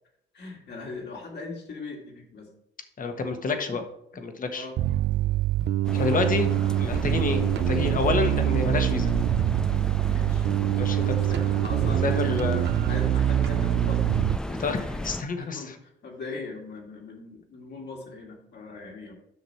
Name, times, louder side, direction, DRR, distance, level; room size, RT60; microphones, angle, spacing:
voice 1, 0.3-2.5 3.4-3.8 4.5-4.8 5.9-6.2 10.0-10.5 10.9-14.0 14.4-19.1, left 3 dB, 60° left, -1 dB, 2.6 m, -40 dB
voice 2, 3.0-3.8 4.1-4.7 5.9-6.5 6.8-9.1 10.7-11.1 12.0-12.7 14.5-15.7, left 4 dB, 45° left, 6 dB, 1.3 m, -28 dB
Bass guitar, 4.8-14.4, right 13 dB, 60° right, 0.4 m, -25 dB
sound 1, 5.8-15.2, left 1 dB, 5° left, 0.4 m, -34 dB
7.7 x 6.2 x 4.3 m, 0.78 s
cardioid pair, 90°, 20 cm